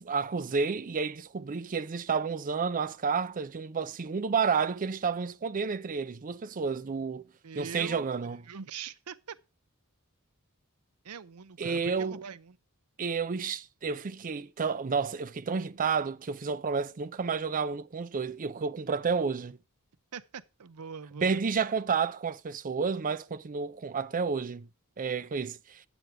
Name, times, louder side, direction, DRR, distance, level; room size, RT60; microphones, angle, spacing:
voice 1, 0.0-7.3 7.6-8.4 11.6-12.2 13.0-19.6 21.2-24.7 25.0-25.8, right 5 dB, 40° right, 0.5 m, -30 dB
voice 2, 7.4-8.1 8.5-9.4 11.0-12.6 20.1-21.4, right 6 dB, 80° right, 0.6 m, -43 dB
9.5 x 8.0 x 4.7 m
head